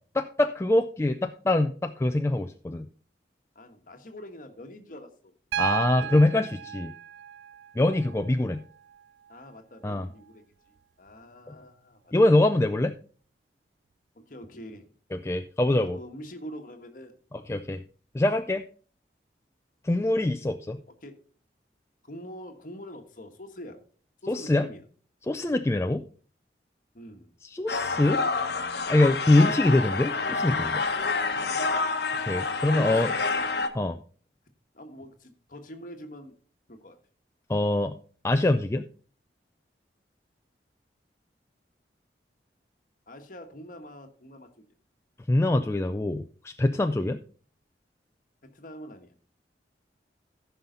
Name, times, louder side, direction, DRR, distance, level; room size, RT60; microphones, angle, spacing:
voice 1, 0.1-2.9 5.6-6.9 7.8-8.6 9.8-10.1 11.5-11.6 12.1-12.9 15.1-16.0 17.5-17.8 18.1-18.6 19.8-20.8 24.3-24.7 25.3-26.0 27.5-28.2 28.9-30.8 32.3-33.1 33.7-34.0 37.5-38.0 38.2-38.8 45.3-47.2, left 2 dB, 15° left, 7 dB, 0.3 m, -24 dB
voice 2, 3.5-5.3 5.9-6.4 9.3-10.4 11.0-12.1 14.1-14.9 15.8-17.2 21.0-21.2 22.0-23.8 24.2-24.8 25.4-25.6 26.9-27.3 32.7-33.4 34.7-36.3 36.7-37.0 43.1-44.6 48.4-49.1, equal, 50° left, 5 dB, 1.4 m, -44 dB
Piano, 5.5-9.5 11.1-11.2, right 10 dB, 90° right, 0.3 m, -35 dB
sound 1, 27.7-33.7, left 4 dB, 65° left, 1.0 m, -28 dB
14.5 x 5.6 x 3.9 m, 0.42 s
head